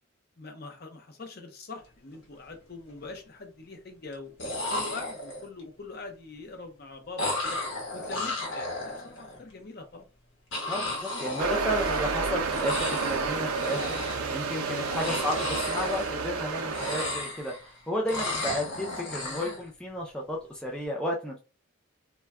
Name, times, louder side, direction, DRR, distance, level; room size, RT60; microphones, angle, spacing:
voice 1, 0.4-4.4 4.7-7.6 7.9-10.1, left 3 dB, 45° left, 5 dB, 0.6 m, -43 dB
sound 1, 2.0-2.2 2.5-3.1 4.1-4.2 4.4-5.6 7.2-9.4 10.5-12.2 12.5-13.2 13.5-14.3 14.8-16.4 16.7-17.7 18.1-19.6, left 2 dB, 65° left, 0.9 m, -34 dB
voice 2, 10.7-21.4, equal, 5° left, -2 dB, 0.3 m, -33 dB
sound 2, 11.4-17.1, right 4 dB, 90° right, 0.5 m, -30 dB
2.2 x 2.1 x 3.4 m, 0.31 s
head